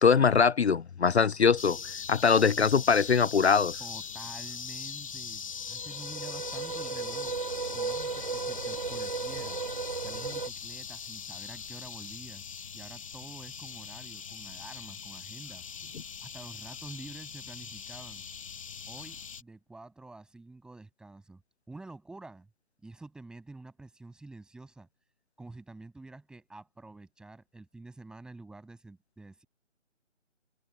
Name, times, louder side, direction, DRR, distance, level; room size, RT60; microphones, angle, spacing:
voice 1, 0.0-1.8 2.1-3.8, left 6 dB, 60° left, 0.5 m, -22 dB
sound 1, 1.6-19.4, left 6 dB, 25° left, 1.2 m, -41 dB
voice 2, 3.8-5.4 5.7-7.4 7.7-9.6 10.0-12.5 12.7-18.3 18.9-21.4 21.7-22.5 22.8-24.9 25.4-29.4, right 2 dB, ahead, 6.9 m, -48 dB
sound 2, 5.7-10.5, right 4 dB, 35° right, 0.6 m, -35 dB
figure-of-eight pair, 150°, 37 cm